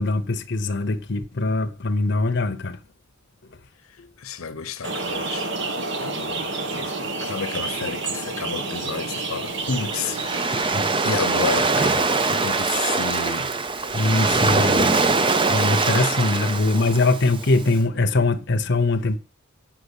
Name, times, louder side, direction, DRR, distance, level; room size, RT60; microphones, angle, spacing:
voice 1, 0.0-2.8 10.5-10.8 13.9-15.0 15.5-19.2, left 2 dB, 55° left, 0.8 m, -22 dB
voice 2, 4.2-5.5 6.0-13.5 14.5-15.1, left 5 dB, 80° left, 0.9 m, -31 dB
sound 1, 4.8-10.5, right 3 dB, 55° right, 1.4 m, -29 dB
Waves surf, 9.5-17.7, right 3 dB, 25° right, 0.5 m, -23 dB
8.1 x 6.2 x 8.1 m
head